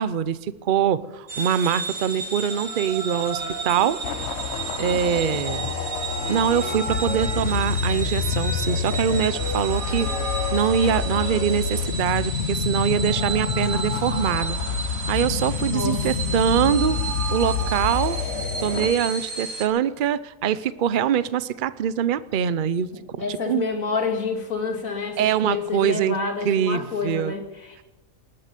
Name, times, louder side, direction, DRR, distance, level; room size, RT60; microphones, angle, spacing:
voice 1, 0.0-4.0 4.8-5.7 6.3-14.6 15.1-17.0 17.3-18.2 18.6-23.7 25.2-26.2 26.4-27.4, right 9 dB, 50° right, 15 dB, 0.7 m, -24 dB
sound 1, 1.3-19.7, right 4 dB, 80° right, 2.0 m, -32 dB
sound 2, 3.3-11.6, left 3 dB, 35° left, 2.1 m, -37 dB
sound 3, 4.0-18.9, left 6 dB, 55° left, 1.2 m, -28 dB
voice 2, 23.1-27.8, left 4 dB, 80° left, 4 dB, 2.7 m, -28 dB
19.5 x 7.8 x 9.1 m, 1.1 s
omnidirectional pair, 1.4 m